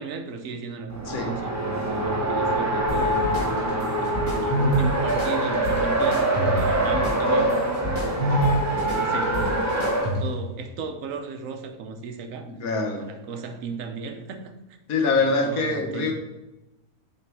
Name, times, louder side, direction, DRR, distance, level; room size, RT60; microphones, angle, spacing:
voice 1, 0.0-1.5 1.9-7.5 8.2-12.5 12.9-14.5 15.1-16.1, right 4 dB, 65° right, 6 dB, 1.1 m, -36 dB
Race car auto racing, 0.9-10.1, right 1 dB, 15° right, 0.7 m, -24 dB
voice 2, 1.1-1.4 12.5-13.1 14.9-16.1, left 3 dB, 70° left, 3 dB, 1.5 m, -24 dB
sound 1, 2.9-10.5, right 1 dB, 20° left, 2.4 m, -28 dB
8.6 x 3.5 x 4.7 m, 1.0 s
omnidirectional pair, 1.6 m